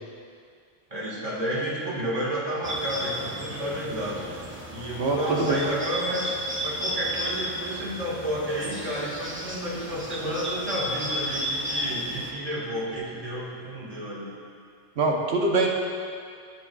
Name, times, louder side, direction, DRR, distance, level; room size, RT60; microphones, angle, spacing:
voice 1, 0.9-4.4 4.7-6.4 6.6-14.3, equal, 30° right, -6 dB, 1.8 m, -31 dB
Bird, 2.6-12.3, equal, 15° right, 0.6 m, -33 dB
voice 2, 5.0-5.6 15.0-15.7, right 3 dB, 65° right, 0 dB, 1.2 m, -23 dB
14.0 x 6.3 x 2.4 m, 2.2 s
omnidirectional pair, 1.2 m